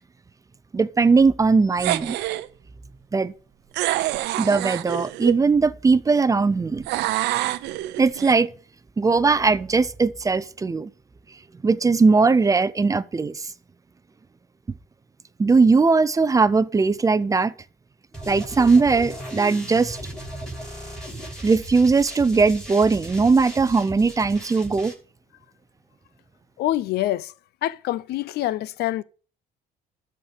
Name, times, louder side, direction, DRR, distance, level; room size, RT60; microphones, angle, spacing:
voice 1, 0.7-2.2 3.1-3.3 4.4-6.8 8.0-8.5 9.0-10.9 11.6-13.4 15.4-17.5 18.3-20.0 21.4-24.9, right 4 dB, 20° right, 0.5 m, -19 dB
sound 1, 1.8-2.5 3.7-5.4 6.9-8.3, right 16 dB, 85° right, 0.6 m, -26 dB
sound 2, 18.1-24.9, right 1 dB, 5° left, 6.3 m, -37 dB
voice 2, 26.6-27.3 27.6-29.0, left 14 dB, 70° left, 0.5 m, -25 dB
13.0 x 4.5 x 6.5 m
cardioid pair, 110°, 17 cm